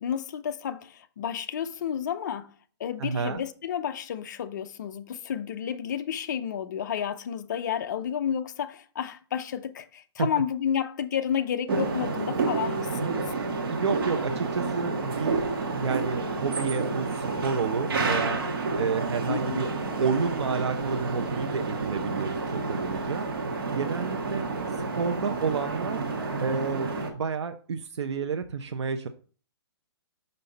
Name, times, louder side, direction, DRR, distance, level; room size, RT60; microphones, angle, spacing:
voice 1, 0.0-2.5 2.8-13.3 19.3-19.6, left 8 dB, 40° left, 0.6 m, -31 dB
voice 2, 3.0-3.4 10.2-10.3 12.9-15.4 15.7-19.7 20.0-23.3 23.5-24.5 24.8-29.1, right 5 dB, 85° right, 0.7 m, -30 dB
sound 1, 11.7-27.1, right 3 dB, 55° right, 1.4 m, -30 dB
5.6 x 5.3 x 4.1 m
hypercardioid pair, 170°, 14 cm